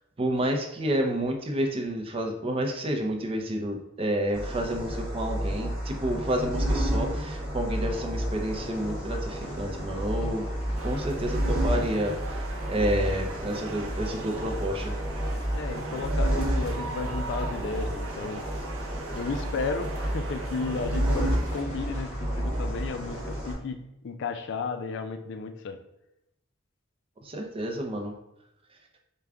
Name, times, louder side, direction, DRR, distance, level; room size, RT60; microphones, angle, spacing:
voice 1, 0.2-10.5 10.8-15.0 19.3-19.4 27.2-28.1, right 1 dB, 30° right, 3 dB, 0.5 m, -30 dB
sound 1, 4.3-23.5, equal, 5° right, 1.1 m, -30 dB
sound 2, 8.5-23.5, equal, 35° left, 1.2 m, -47 dB
sound 3, 10.7-21.6, right 4 dB, 80° right, 0.6 m, -40 dB
voice 2, 15.5-18.5 19.1-25.8, left 4 dB, 60° left, 7 dB, 0.4 m, -34 dB
4.8 x 2.2 x 3.4 m, 0.86 s
head